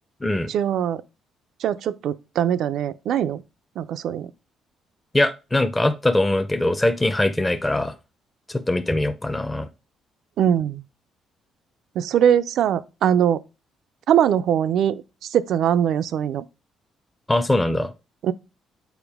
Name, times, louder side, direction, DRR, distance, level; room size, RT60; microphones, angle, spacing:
voice 1, 0.5-1.0 1.6-3.4 3.8-4.3 10.4-10.8 12.0-13.4 14.1-15.0 15.3-16.4 18.2-18.3, right 9 dB, 70° right, 0.4 m, -21 dB
voice 2, 5.1-7.9 8.5-9.7 17.3-17.9, left 1 dB, 15° left, 0.5 m, -22 dB
7.1 x 4.3 x 3.4 m
cardioid pair, 100°, 0 cm